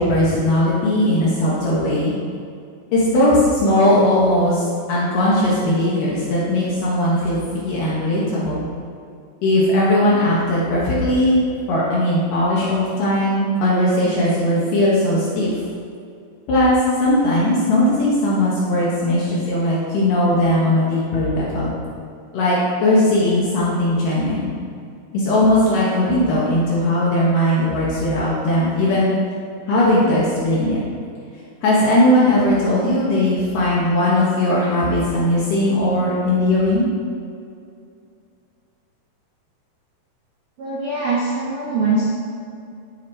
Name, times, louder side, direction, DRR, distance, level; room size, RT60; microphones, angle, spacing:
voice 1, 0.0-2.1 2.9-8.7 9.4-11.4 11.7-15.5 16.5-21.7 22.3-24.5 25.1-29.1 29.7-30.8 31.6-36.9, left 1 dB, 75° left, -7 dB, 3.0 m, -18 dB
voice 2, 40.6-42.1, right 3 dB, 55° right, -6 dB, 1.6 m, -22 dB
13.5 x 7.8 x 3.0 m, 2.4 s
omnidirectional pair, 4.0 m